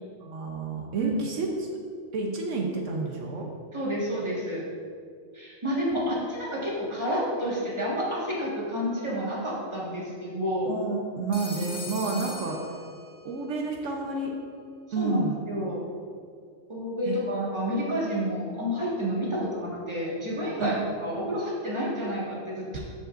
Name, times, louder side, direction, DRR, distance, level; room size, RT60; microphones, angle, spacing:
voice 1, 0.2-1.5 2.1-3.4 10.7-12.6 13.2-14.3 14.9-15.4 17.1-17.2 19.4-19.5 20.6-20.7 22.7-22.8, right 3 dB, 80° right, 0 dB, 1.2 m, -30 dB
voice 2, 3.7-4.6 5.3-10.7 15.0-15.2 15.5-15.8 16.7-22.8, equal, 25° right, -6 dB, 1.8 m, -30 dB
Telephone, 11.3-13.4, left 1 dB, 40° left, 1.0 m, -40 dB
14.0 x 5.4 x 2.5 m, 2.2 s
omnidirectional pair, 1.3 m